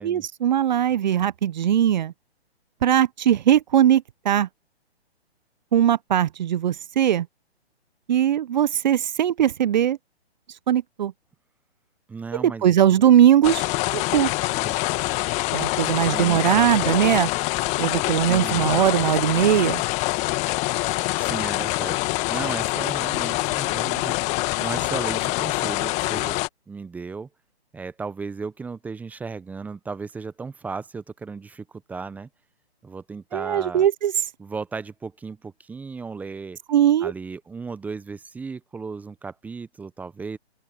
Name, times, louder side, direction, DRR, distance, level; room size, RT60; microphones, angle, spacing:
voice 1, 0.0-2.1 2.8-4.5 5.7-7.3 8.1-10.0 10.7-11.1 12.3-13.7 13.9-14.3 15.5-17.3 17.8-19.8 33.3-34.1 36.7-37.1, right 10 dB, 45° right, 0.9 m, -20 dB
voice 2, 12.1-13.0 14.6-14.9 16.1-16.9 18.3-18.7 21.2-24.3 24.6-26.4 26.7-27.3 27.7-32.3 32.8-33.9 34.4-36.6 37.0-40.4, right 4 dB, 5° right, 0.9 m, -35 dB
sound 1, 13.4-26.5, left 23 dB, 20° left, 1.7 m, -25 dB
open air
figure-of-eight pair, 140°, 32 cm